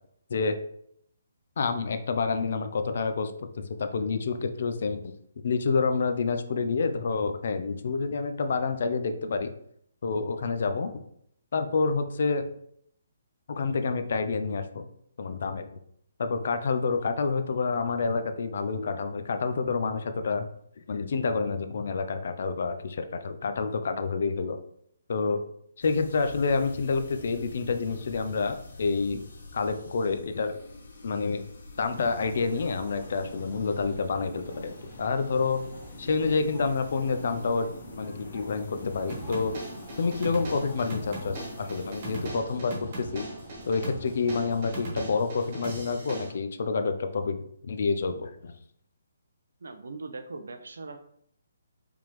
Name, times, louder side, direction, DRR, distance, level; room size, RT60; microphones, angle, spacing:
voice 1, 1.6-3.3 3.6-5.0 5.4-9.5 10.0-10.9 11.5-12.4 13.5-14.9 15.2-15.6 16.2-20.5 20.9-24.6 25.1-25.4 25.8-29.2 29.5-30.6 31.0-31.5 31.8-35.6 36.0-39.6 40.0-43.3 43.7-47.4 47.7-48.5, left 4 dB, 45° left, 8 dB, 0.4 m, -28 dB
sound 1, 25.8-42.3, left 2 dB, 65° left, 1.9 m, -47 dB
sound 2, 31.9-44.8, right 1 dB, 10° right, 0.8 m, -47 dB
sound 3, 39.1-46.3, right 1 dB, 30° right, 1.1 m, -39 dB
voice 2, 49.6-51.0, right 3 dB, 75° right, 7 dB, 0.7 m, -40 dB
4.9 x 3.6 x 3.0 m, 0.69 s
hypercardioid pair, 180°, 0 cm